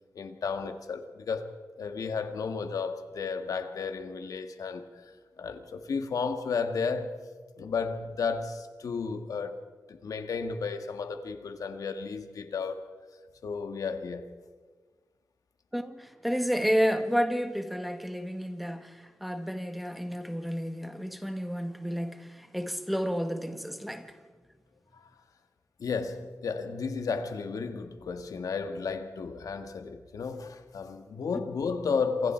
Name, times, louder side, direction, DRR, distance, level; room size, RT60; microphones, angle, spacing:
voice 1, 0.2-1.5 1.8-5.0 5.4-7.2 7.6-9.6 9.9-12.9 13.4-14.3 24.9-25.1 25.8-32.3, left 5 dB, 85° left, 1.9 m, -33 dB
voice 2, 15.7-24.2, equal, ahead, 1.5 m, -31 dB
27.5 x 26.5 x 4.6 m
wide cardioid pair, 125°, 6 cm